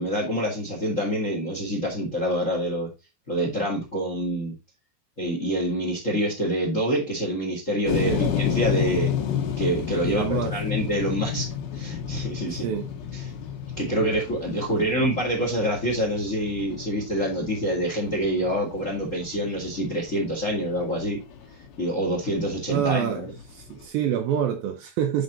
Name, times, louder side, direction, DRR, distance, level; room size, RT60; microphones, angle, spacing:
voice 1, 0.0-2.9 3.3-4.5 5.2-9.1 9.6-12.7 13.1-13.3 13.8-21.2 21.8-23.3, equal, 35° left, 1.3 m, -26 dB
sound 1, 7.9-23.9, left 8 dB, 85° left, 3.6 m, -32 dB
voice 2, 10.1-10.5 12.6-12.9 14.7-14.8 22.7-23.2 23.5-25.2, right 9 dB, 75° right, 2.3 m, -26 dB
9.8 x 4.0 x 4.0 m
omnidirectional pair, 4.8 m